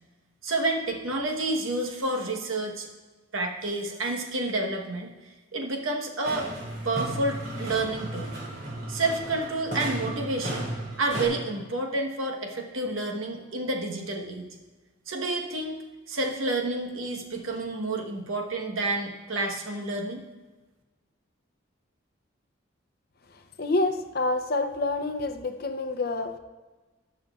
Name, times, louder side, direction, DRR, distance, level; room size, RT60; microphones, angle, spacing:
voice 1, 0.4-2.9 3.3-5.1 5.5-6.5 6.8-8.3 8.9-10.7 11.0-14.5 15.1-15.8 16.1-20.2, right 2 dB, 90° right, 1 dB, 1.2 m, -29 dB
sound 1, 6.2-11.3, right 1 dB, 50° right, 2.6 m, -34 dB
voice 2, 23.6-26.4, left 2 dB, 50° left, 7 dB, 0.6 m, -27 dB
18.5 x 6.4 x 2.4 m, 1.3 s
head